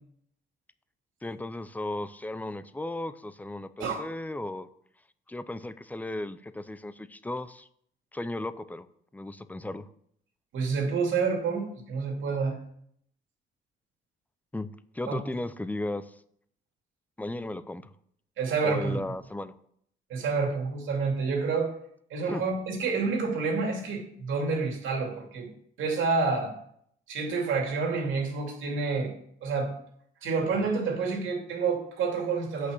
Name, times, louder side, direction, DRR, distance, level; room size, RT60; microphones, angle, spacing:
voice 1, 1.2-4.7 5.3-7.7 8.1-8.9 9.1-9.9 14.5-14.7 14.9-16.1 17.2-17.9 18.6-19.5 22.3-22.5, left 2 dB, 10° left, 14 dB, 0.5 m, -35 dB
voice 2, 10.5-12.6 15.1-15.2 18.4-19.0 20.1-21.7 22.1-25.5 25.8-26.5 27.1-29.1 29.4-29.7 30.2-32.7, right 4 dB, 80° right, 1 dB, 2.7 m, -28 dB
8.3 x 5.8 x 6.2 m, 0.68 s
cardioid pair, 90°, 20 cm